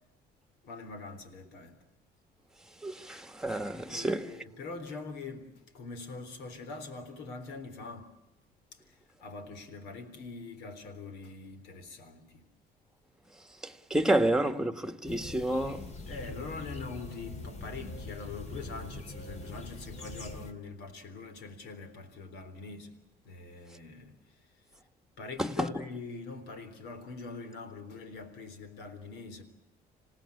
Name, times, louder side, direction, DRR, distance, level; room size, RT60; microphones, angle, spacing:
voice 1, 0.6-1.8 3.9-8.1 8.7-8.8 9.2-12.5 16.1-22.9 23.3-24.1 25.2-29.4, left 3 dB, 85° left, 3.7 m, -43 dB
voice 2, 2.8-4.3 13.6-15.9 25.4-25.8, right 1 dB, 5° right, 1.5 m, -30 dB
sound 1, 15.1-20.5, left 2 dB, 45° left, 2.9 m, -43 dB
27.0 x 18.0 x 8.5 m
cardioid pair, 110°, 17 cm